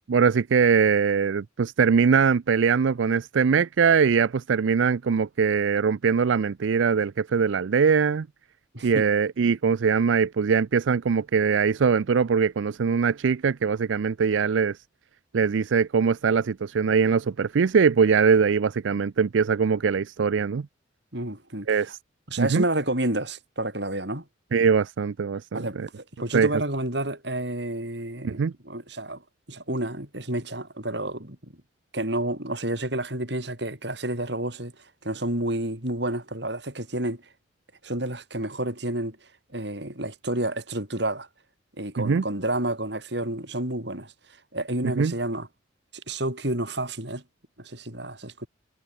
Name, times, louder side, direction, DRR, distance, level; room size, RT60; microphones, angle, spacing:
voice 1, 0.1-8.3 8.8-14.8 15.3-20.7 21.7-22.0 22.4-22.6 24.5-25.9 26.3-26.5 28.2-28.5 42.0-42.2 44.9-45.1, right 6 dB, 80° right, 0.4 m, -22 dB
voice 2, 21.1-21.8 22.3-24.2 25.5-29.2 29.5-31.5 31.9-34.7 35.0-37.2 37.8-39.2 39.5-41.3 41.8-44.1 44.5-45.5 46.1-47.2 47.6-48.5, right 1 dB, 60° right, 6.7 m, -30 dB
head